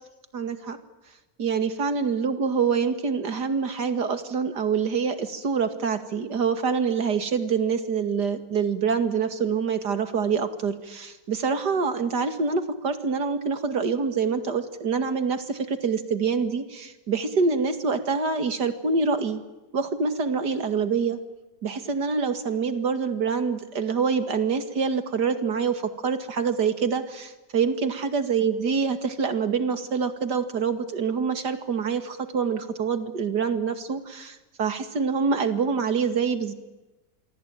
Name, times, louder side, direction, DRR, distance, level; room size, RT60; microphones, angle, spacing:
voice 1, 0.3-0.8 1.4-19.4 19.7-21.2 21.6-36.5, right 5 dB, 75° right, 9 dB, 2.7 m, -26 dB
27.0 x 23.5 x 9.1 m, 1.0 s
omnidirectional pair, 1.8 m